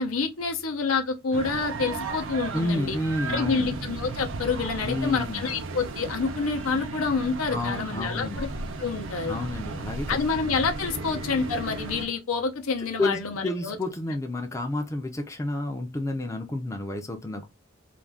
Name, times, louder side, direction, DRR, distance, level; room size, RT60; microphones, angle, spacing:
voice 1, 0.0-3.0 3.3-8.5 8.8-9.4 10.1-13.8, left 4 dB, 80° left, 0.6 m, -28 dB
sound 1, 1.3-12.1, right 3 dB, 65° right, 0.5 m, -35 dB
voice 2, 2.5-3.7 4.8-5.5 7.5-8.4 9.3-10.2 13.0-17.5, left 2 dB, 15° left, 0.4 m, -30 dB
2.4 x 2.2 x 3.3 m
head